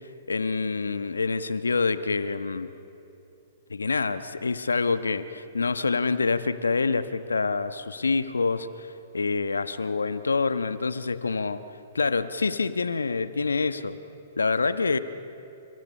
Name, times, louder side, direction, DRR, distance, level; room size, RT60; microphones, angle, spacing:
voice 1, 0.3-2.7 3.7-11.6 11.9-14.0 14.4-15.0, left 4 dB, 85° left, 11 dB, 1.2 m, -26 dB
30.0 x 29.0 x 5.5 m, 2.8 s
hypercardioid pair, 120°, 0 cm